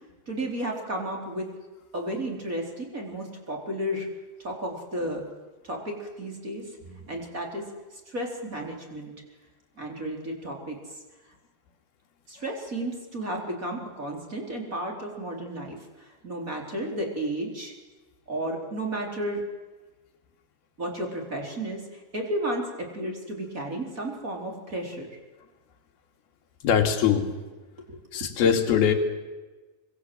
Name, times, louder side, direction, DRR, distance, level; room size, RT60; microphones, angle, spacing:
voice 1, 0.3-1.5 1.9-4.1 4.4-5.3 5.7-7.7 8.1-9.2 9.8-10.8 12.3-15.8 16.2-17.7 18.3-19.5 20.8-21.8 22.1-25.1 27.9-28.2, right 1 dB, 20° right, 1 dB, 4.2 m, -33 dB
voice 2, 26.6-27.3 28.1-28.9, left 8 dB, 65° left, 3 dB, 4.1 m, -21 dB
25.5 x 23.5 x 7.9 m, 1.2 s
omnidirectional pair, 4.9 m